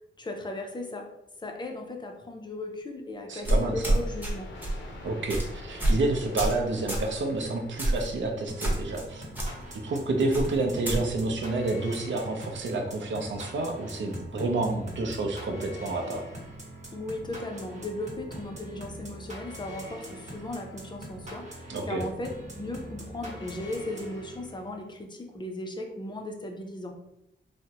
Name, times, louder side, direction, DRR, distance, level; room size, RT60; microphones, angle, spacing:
voice 1, 0.2-1.1 1.4-4.5 16.9-27.0, left 1 dB, 25° left, 3 dB, 0.4 m, -37 dB
voice 2, 3.3-4.0 5.0-9.2 9.8-16.2 21.7-22.0, right 2 dB, 70° right, 2 dB, 0.5 m, -29 dB
sound 1, 3.4-4.3 4.6-4.8 5.3-5.4 5.8-6.0 6.4-6.6 6.9-7.1 7.8-8.1 8.6-9.0 9.3-9.5 10.3-11.0, right 1 dB, 10° right, 0.7 m, -26 dB
sound 2, 3.5-9.1, left 1 dB, 75° left, 0.6 m, -47 dB
sound 3, 8.5-24.8, right 1 dB, 35° right, 0.8 m, -43 dB
3.4 x 2.0 x 2.8 m, 0.85 s
wide cardioid pair, 145°, 20 cm